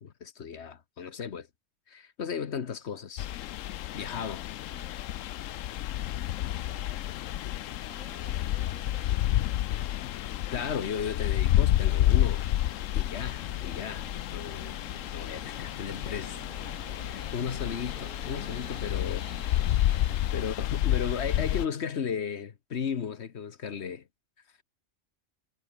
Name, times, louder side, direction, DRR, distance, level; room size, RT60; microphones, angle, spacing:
voice 1, 0.0-1.5 1.9-3.3 3.9-4.5 10.5-12.5 12.9-14.8 15.1-16.3 17.1-19.3 20.3-24.0, left 7 dB, 60° left, 1.3 m, -35 dB
sound 1, 3.2-21.7, left 13 dB, 80° left, 1.0 m, -30 dB
voice 2, 4.7-5.0 6.4-7.2 7.9-10.3 15.9-16.9 19.8-20.7, right 2 dB, 90° right, 4.7 m, -56 dB
sound 2, 12.1-20.3, right 5 dB, 40° right, 1.2 m, -51 dB
omnidirectional pair, 1.3 m